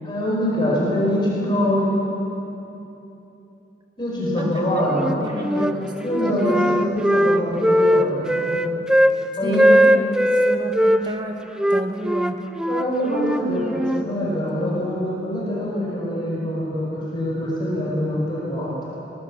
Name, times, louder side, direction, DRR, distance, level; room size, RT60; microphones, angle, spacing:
voice 1, 0.0-2.0 4.0-5.2 5.5-5.7 6.0-8.6 9.4-9.7 12.7-18.7, equal, 25° left, -5 dB, 5.4 m, -24 dB
voice 2, 4.4-4.9 5.2-6.8 7.1-7.5 9.4-11.4 11.7-12.4, right 1 dB, 25° right, 3 dB, 1.9 m, -31 dB
Wind instrument woodwind instrument, 4.9-5.8 6.1-9.2 9.5-11.0 11.6-14.1, equal, 5° right, 0.5 m, -19 dB
23.5 x 20.0 x 7.3 m, 3.0 s
head